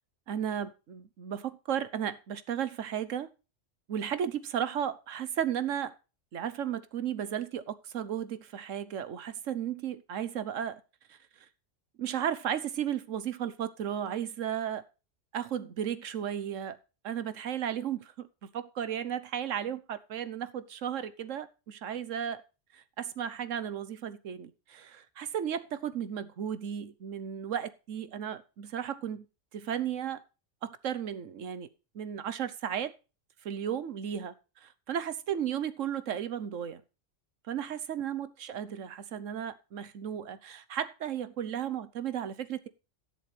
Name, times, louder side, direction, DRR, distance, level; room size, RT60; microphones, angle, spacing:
voice 1, 0.3-3.3 3.9-5.9 6.3-10.8 11.1-11.2 12.0-14.8 15.3-16.8 17.0-18.3 18.5-22.4 22.7-29.3 29.5-30.2 30.6-31.7 31.9-32.9 33.4-34.3 34.6-36.8 37.5-42.7, right 9 dB, 85° right, 1.3 m, -34 dB
12.5 x 10.5 x 3.3 m
omnidirectional pair, 1.3 m